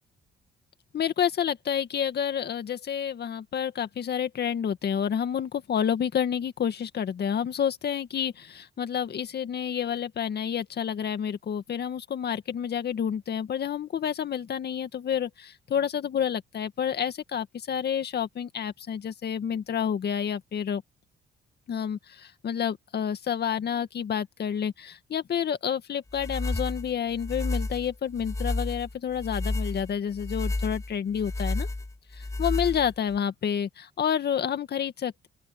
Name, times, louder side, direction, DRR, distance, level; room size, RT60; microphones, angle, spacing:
voice 1, 0.9-20.8 21.7-31.7 32.4-35.3, left 8 dB, 55° left, 2.1 m, -29 dB
sound 1, 26.1-33.2, left 2 dB, 15° left, 3.3 m, -31 dB
open air
cardioid pair, 90°, 20 cm